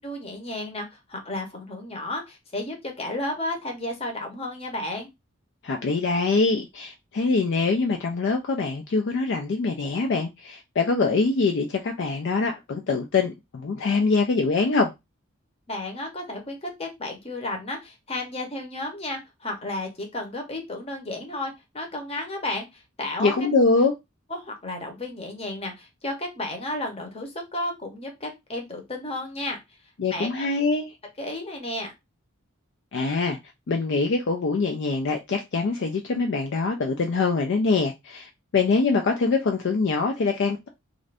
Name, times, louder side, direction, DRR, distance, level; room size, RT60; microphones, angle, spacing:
voice 1, 0.0-5.1 15.7-23.5 24.3-29.6 30.1-30.5 31.2-31.9, left 1 dB, 30° left, 0.9 m, -33 dB
voice 2, 5.6-14.9 23.2-23.9 30.0-30.9 32.9-33.4 33.7-40.7, left 4 dB, 55° left, 0.4 m, -24 dB
2.5 x 2.5 x 3.3 m
head